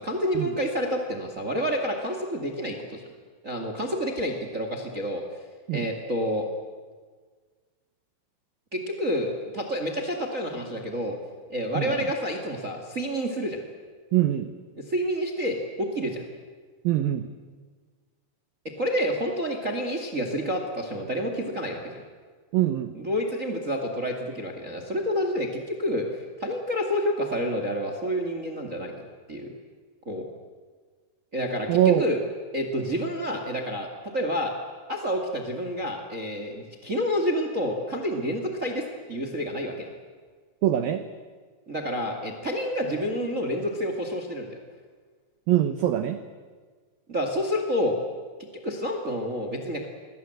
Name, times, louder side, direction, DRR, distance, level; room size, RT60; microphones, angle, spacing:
voice 1, 0.0-3.0 3.4-5.4 5.7-6.4 8.7-11.2 11.5-13.6 14.8-16.2 18.8-21.8 22.9-29.0 29.3-29.5 30.0-30.2 31.3-32.2 32.5-34.5 34.9-39.9 41.7-44.6 47.1-48.0 48.6-49.8, equal, 55° right, 4 dB, 0.8 m, -29 dB
voice 2, 14.1-14.5 16.8-17.2 22.5-22.9 31.7-32.1 40.6-41.0 45.5-46.2, right 12 dB, 85° right, 10 dB, 2.0 m, -23 dB
27.5 x 21.5 x 7.9 m, 1.5 s
omnidirectional pair, 5.6 m